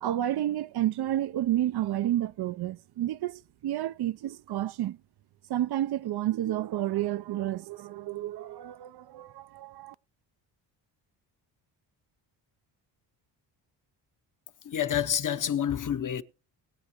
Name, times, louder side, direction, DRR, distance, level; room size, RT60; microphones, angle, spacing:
voice 1, 0.0-5.0 5.5-9.9, right 13 dB, 60° right, 0.5 m, -30 dB
voice 2, 14.6-16.2, left 9 dB, 45° left, 0.9 m, -28 dB
21.0 x 7.9 x 3.0 m
cardioid pair, 80°, 45 cm